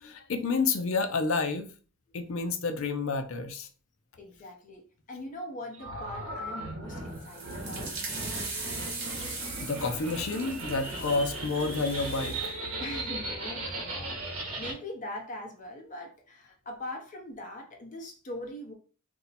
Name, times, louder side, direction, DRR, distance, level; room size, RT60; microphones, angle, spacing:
voice 1, 0.0-1.7 2.1-3.7 9.2-12.5, left 4 dB, 65° left, 0.5 m, -30 dB
voice 2, 4.2-4.8 5.1-8.0 12.8-18.7, left 1 dB, 40° left, 0.8 m, -41 dB
sound 1, 5.7-14.7, right 2 dB, 80° right, 0.9 m, -37 dB
sound 2, 7.1-12.5, right 4 dB, 55° right, 1.1 m, -40 dB
2.6 x 2.1 x 4.0 m
head